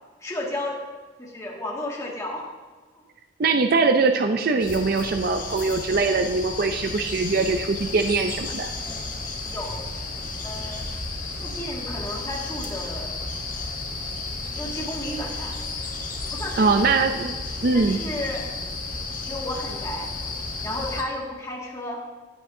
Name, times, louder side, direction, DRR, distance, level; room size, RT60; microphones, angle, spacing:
voice 1, 0.2-0.8 1.2-2.5 3.0-3.1 8.8-9.1 9.4-9.9 10.4-10.9 11.4-13.3 14.6-15.6 16.3-16.9 17.7-18.5 19.2-20.2 20.6-22.0, left 1 dB, 20° left, -3 dB, 2.0 m, -33 dB
voice 2, 3.4-8.7 16.6-17.4 17.6-18.0, right 4 dB, 55° right, 6 dB, 0.5 m, -22 dB
sound 1, 4.6-21.0, left 3 dB, 50° left, 1.6 m, -33 dB
15.5 x 9.0 x 2.7 m, 1.3 s
head